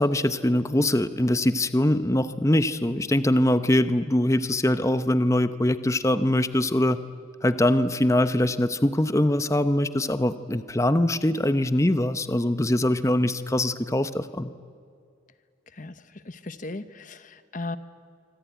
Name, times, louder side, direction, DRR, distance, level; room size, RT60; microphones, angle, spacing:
voice 1, 0.0-7.0 7.4-14.5, left 1 dB, 15° left, 11 dB, 0.8 m, -23 dB
voice 2, 15.7-17.8, left 2 dB, 40° left, 12 dB, 0.9 m, -37 dB
25.5 x 25.0 x 9.3 m, 2.3 s
head